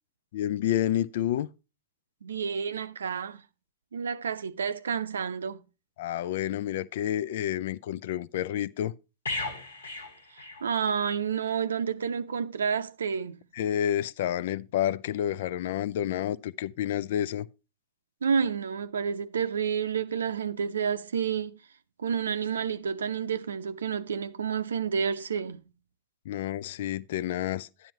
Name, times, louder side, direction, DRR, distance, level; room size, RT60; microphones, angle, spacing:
voice 1, 0.3-1.5 6.0-8.9 13.5-17.5 26.3-27.9, left 11 dB, 55° left, 0.4 m, -29 dB
voice 2, 2.2-3.4 3.9-5.6 10.4-13.4 18.2-21.6 22.0-25.6, right 7 dB, 70° right, 0.6 m, -30 dB
sound 1, 9.2-11.1 11.5-11.7, left 2 dB, 75° left, 2.0 m, -36 dB
11.5 x 10.0 x 2.9 m
figure-of-eight pair, 90°, 0 cm